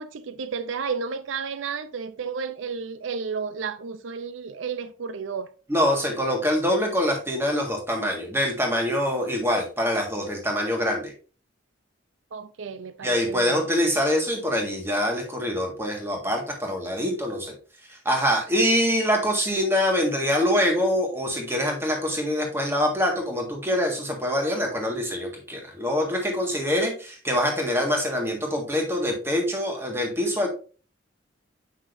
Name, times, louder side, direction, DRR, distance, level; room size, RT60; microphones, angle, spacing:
voice 1, 0.0-5.5 12.3-13.6, right 5 dB, 80° right, 0.5 m, -32 dB
voice 2, 5.7-11.1 13.0-17.5 17.9-30.5, equal, 10° right, 1.6 m, -24 dB
7.9 x 6.1 x 2.6 m
head